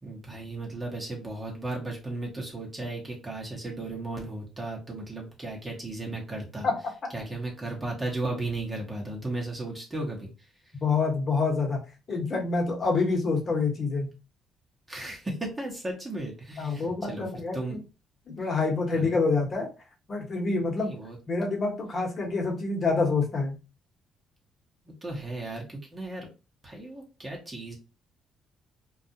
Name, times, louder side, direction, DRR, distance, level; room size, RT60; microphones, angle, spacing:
voice 1, 0.0-6.7 7.1-10.3 14.9-17.3 17.5-17.8 18.9-19.2 20.8-21.2 24.9-26.3 26.6-27.7, right 2 dB, 20° right, -1 dB, 0.9 m, -35 dB
voice 2, 10.8-11.8 12.1-14.1 16.6-17.8 18.3-19.7 20.1-20.9 21.3-23.5, left 4 dB, 40° left, 0 dB, 1.0 m, -27 dB
2.3 x 2.1 x 2.7 m, 0.30 s
cardioid pair, 90°, 0 cm